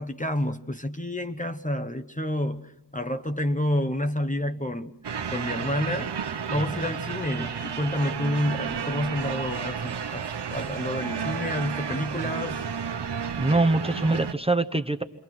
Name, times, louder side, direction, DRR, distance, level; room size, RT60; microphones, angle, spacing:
voice 1, 0.0-4.9 5.3-6.1 6.5-12.7, left 1 dB, 20° left, 1.1 m, -29 dB
sound 1, 5.0-14.3, right 6 dB, 70° right, 1.0 m, -32 dB
voice 2, 6.6-6.9 13.4-15.0, right 2 dB, 15° right, 1.0 m, -24 dB
29.5 x 23.5 x 6.1 m
wide cardioid pair, 65°, 42 cm